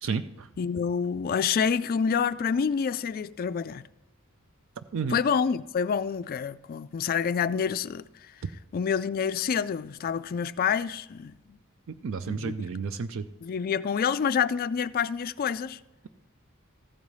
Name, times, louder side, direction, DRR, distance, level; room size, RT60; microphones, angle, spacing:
voice 1, 0.0-0.5 4.9-5.2 11.9-13.3, right 5 dB, 60° right, 0.4 m, -31 dB
voice 2, 0.6-3.8 5.1-8.0 8.7-11.6 12.3-12.5 13.4-15.8, left 6 dB, 40° left, 0.3 m, -27 dB
14.5 x 4.8 x 5.4 m
head